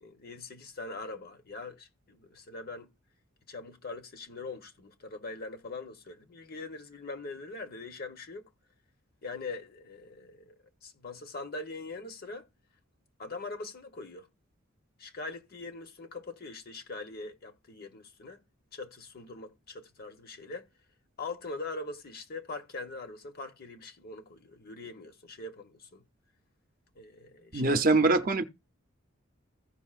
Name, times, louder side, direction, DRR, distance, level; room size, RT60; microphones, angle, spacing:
voice 1, 0.0-2.9 3.5-8.5 9.2-10.6 10.8-12.5 13.2-14.3 15.0-18.4 18.7-20.7 21.2-26.0 27.0-27.8, left 3 dB, 45° left, 0.9 m, -42 dB
voice 2, 27.5-28.4, right 3 dB, 40° right, 0.6 m, -23 dB
15.5 x 5.3 x 2.4 m
head